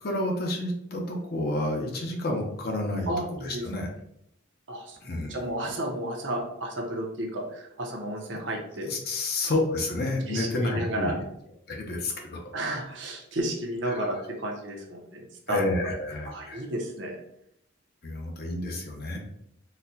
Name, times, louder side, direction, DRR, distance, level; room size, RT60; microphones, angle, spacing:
voice 1, 0.0-3.1 3.4-3.9 5.0-5.4 8.3-8.4 8.8-11.1 11.7-12.4 13.8-14.1 15.5-16.7 18.0-19.2, left 2 dB, 50° left, 1 dB, 0.6 m, -30 dB
voice 2, 3.1-3.6 4.7-8.9 10.3-11.2 12.5-15.2 15.5-15.6 16.3-17.2, right 1 dB, 65° right, 1 dB, 0.7 m, -32 dB
4.0 x 2.2 x 2.7 m, 0.76 s
head